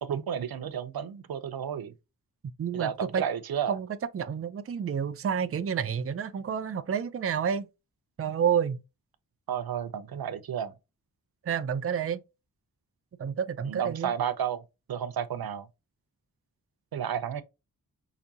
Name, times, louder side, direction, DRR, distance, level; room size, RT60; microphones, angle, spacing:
voice 1, 0.0-1.9 2.7-3.8 9.5-10.7 13.7-14.6 14.9-15.7 16.9-17.4, right 8 dB, 85° right, 0.6 m, -32 dB
voice 2, 2.6-3.2 3.7-3.9 4.1-7.7 8.2-8.8 11.4-12.2 13.2-14.1, right 7 dB, 40° right, 0.4 m, -29 dB
5.0 x 2.6 x 2.7 m
wide cardioid pair, 105°, 35 cm